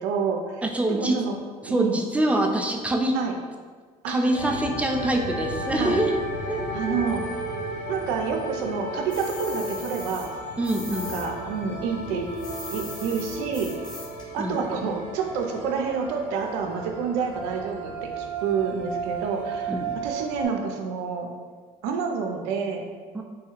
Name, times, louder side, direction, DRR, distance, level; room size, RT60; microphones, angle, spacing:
voice 1, 0.0-0.6 0.9-1.3 1.6-2.0 3.1-3.3 4.0-4.3 5.8-6.0 6.7-7.2 7.9-10.3 10.9-12.3 12.7-13.7 14.3-19.7 20.0-21.3 21.8-22.9, right 6 dB, 70° right, 3 dB, 0.4 m, -28 dB
voice 2, 0.6-1.2 1.6-3.1 4.1-6.2 6.5-7.1 10.6-11.2 14.4-14.6 19.7-20.0 23.1-23.2, right 1 dB, 5° right, 2 dB, 0.4 m, -25 dB
sound 1, 4.3-20.5, right 1 dB, 45° left, 1.1 m, -34 dB
sound 2, 5.5-5.7 6.5-7.0 7.2-7.7 8.4-8.9 9.4-9.9, equal, 70° left, 0.9 m, -42 dB
sound 3, 9.1-11.3 11.5-14.3, left 1 dB, 20° left, 1.0 m, -41 dB
3.2 x 2.3 x 3.0 m, 1.5 s
hypercardioid pair, 70°, 19 cm